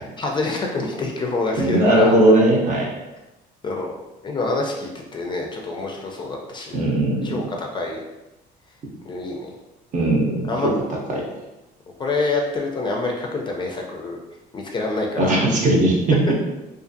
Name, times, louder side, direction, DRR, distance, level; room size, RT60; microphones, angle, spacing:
voice 1, 0.2-2.1 3.6-3.9 4.2-6.8 7.2-8.0 9.0-9.5 10.5-10.7 12.0-14.2 14.5-15.4, left 3 dB, 30° left, 0 dB, 0.4 m, -26 dB
voice 2, 1.6-2.9 6.7-7.4 9.9-10.7 11.1-11.2 15.2-16.2, right 1 dB, 50° right, -2 dB, 0.7 m, -18 dB
2.4 x 2.4 x 2.5 m, 1.0 s
cardioid pair, 110°, 17 cm